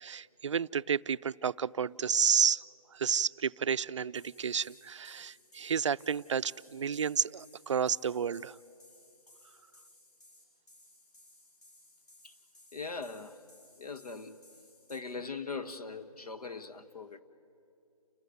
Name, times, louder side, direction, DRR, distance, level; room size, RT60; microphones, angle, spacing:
voice 1, 0.0-2.6 2.9-8.6, right 7 dB, 55° right, 0.4 m, -31 dB
sound 1, 4.1-15.0, left 1 dB, 30° left, 5.5 m, -60 dB
voice 2, 12.7-13.4 13.8-14.4 14.9-17.2, left 4 dB, 85° left, 1.4 m, -41 dB
29.5 x 15.0 x 7.9 m
hypercardioid pair, 160°, 19 cm